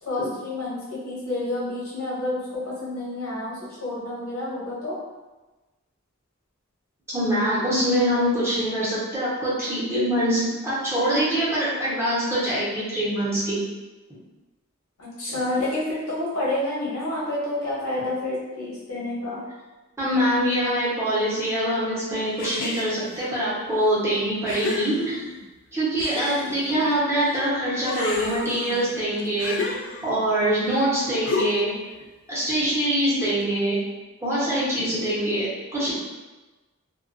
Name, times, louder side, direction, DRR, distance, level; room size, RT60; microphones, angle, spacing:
voice 1, 0.0-4.9 15.0-19.4, left 2 dB, 85° left, -7 dB, 1.0 m, -29 dB
voice 2, 7.1-13.6 20.0-25.2 25.7-31.7 32.3-33.8 34.2-35.9, right 1 dB, 15° right, -10 dB, 0.8 m, -24 dB
sound 1, 22.4-23.2 23.9-24.0 24.5-25.5 26.0-27.4 27.7-30.3 31.3-31.8, left 3 dB, 55° left, 0.3 m, -31 dB
2.3 x 2.2 x 2.5 m, 1.2 s
head